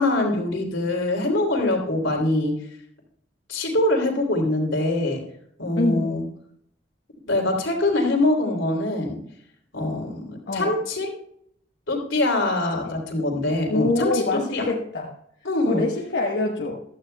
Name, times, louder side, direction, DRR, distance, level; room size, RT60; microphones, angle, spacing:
voice 1, 0.0-2.5 3.5-5.2 5.6-6.2 7.3-9.2 9.7-11.1 11.9-14.7 15.4-15.8, left 2 dB, 85° left, 1 dB, 3.1 m, -23 dB
voice 2, 5.8-6.2 10.5-10.7 12.8-13.0 13.7-15.1 15.6-16.8, left 2 dB, 60° left, -1 dB, 1.1 m, -25 dB
15.5 x 12.5 x 2.3 m, 0.71 s
head